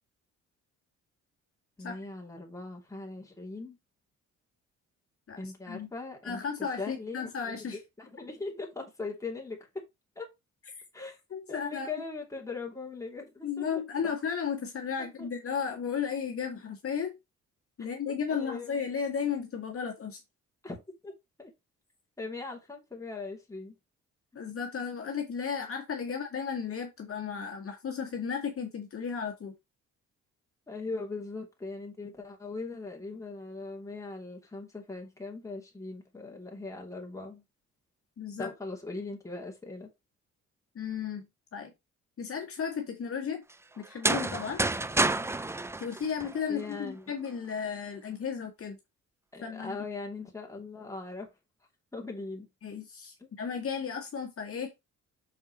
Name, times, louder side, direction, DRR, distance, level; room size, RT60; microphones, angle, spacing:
voice 1, 1.8-3.8 5.4-7.6 8.0-9.7 10.2-10.3 10.9-11.2 11.5-13.7 14.0-14.1 15.2-15.3 18.4-18.7 20.6-21.1 21.4-21.5 22.2-23.8 30.7-37.4 38.4-39.9 46.5-47.1 49.3-51.3 51.9-52.5 53.2-53.3, left 3 dB, 10° left, 2.9 m, -40 dB
voice 2, 6.2-7.8 11.3-11.9 13.4-17.1 17.8-20.2 24.4-29.5 38.2-38.5 40.8-41.3 41.5-41.7 42.2-43.4 43.8-44.6 45.8-48.8 49.4-49.8 52.6-54.7, left 6 dB, 50° left, 1.9 m, -34 dB
sound 1, 43.9-46.7, right 2 dB, 10° right, 0.4 m, -29 dB
6.7 x 4.4 x 4.2 m
cardioid pair, 90°, 30 cm